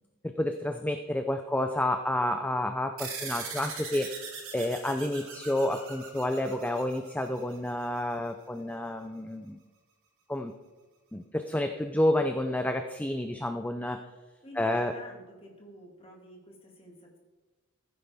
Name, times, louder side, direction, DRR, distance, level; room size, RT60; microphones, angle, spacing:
voice 1, 0.2-4.1 4.5-9.6 10.3-10.5 11.1-14.0 14.6-14.9, left 1 dB, 5° left, 6 dB, 0.4 m, -29 dB
sound 1, 3.0-7.8, right 5 dB, 65° right, 3.3 m, -41 dB
voice 2, 14.4-17.2, equal, 25° left, 0 dB, 2.2 m, -49 dB
15.5 x 9.5 x 3.5 m, 1.3 s
head